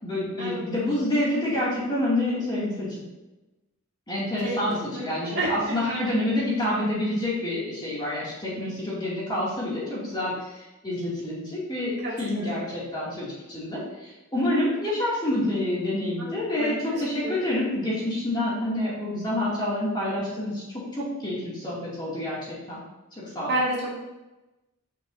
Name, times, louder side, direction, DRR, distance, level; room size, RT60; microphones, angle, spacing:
voice 1, 0.0-3.1 4.1-20.6 21.0-22.4 22.7-22.8 23.1-23.5, left 1 dB, 20° left, -7 dB, 2.4 m, -28 dB
voice 2, 4.8-5.5 12.0-12.6 16.2-16.3 16.6-17.5 23.5-23.9, right 1 dB, 50° right, -6 dB, 2.1 m, -30 dB
9.7 x 5.4 x 2.7 m, 1.0 s
head